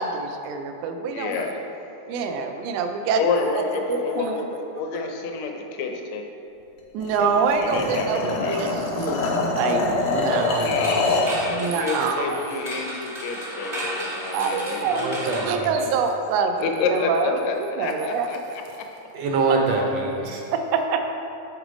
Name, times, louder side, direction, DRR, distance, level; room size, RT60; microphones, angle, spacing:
voice 1, 0.0-1.4 2.1-3.2 3.9-4.4 6.9-8.7 9.0-9.2 9.5-10.7 11.5-12.4 13.8-13.9 14.3-16.5 16.9-18.3 20.5-21.0, right 5 dB, 90° right, 5 dB, 1.5 m, -25 dB
voice 2, 1.1-1.8 3.2-6.3 7.2-8.6 10.6-15.7 16.6-18.9, left 4 dB, 70° left, 3 dB, 1.8 m, -29 dB
sound 1, 7.0-11.4, left 3 dB, 90° left, 2.4 m, -25 dB
voice 3, 10.2-11.0 14.8-15.7 19.1-20.4, right 3 dB, 70° right, 0 dB, 1.6 m, -26 dB
sound 2, 10.3-16.3, right 1 dB, 50° right, 0.4 m, -34 dB
10.0 x 4.0 x 5.1 m, 2.8 s
omnidirectional pair, 3.6 m